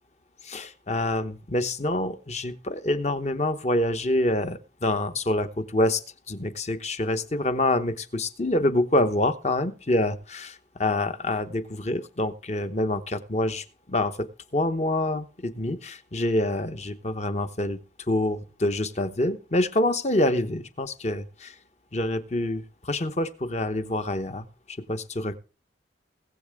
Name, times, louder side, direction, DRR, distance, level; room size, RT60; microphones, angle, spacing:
voice 1, 0.4-14.3 14.5-17.8 18.1-21.5 21.9-25.4, left 1 dB, 35° left, 10 dB, 0.9 m, -26 dB
21.0 x 7.4 x 3.5 m, 0.34 s
head